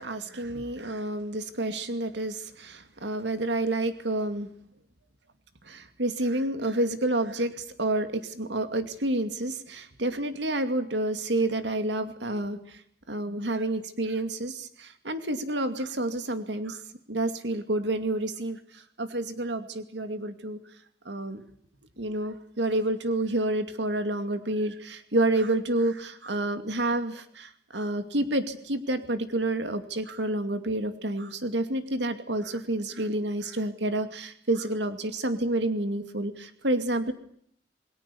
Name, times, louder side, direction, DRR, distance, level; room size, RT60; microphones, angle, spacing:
voice 1, 0.0-4.5 5.6-12.8 13.1-16.8 17.1-20.6 21.0-21.4 22.0-37.1, right 1 dB, 70° right, 9 dB, 2.5 m, -29 dB
28.0 x 23.5 x 7.1 m, 0.65 s
head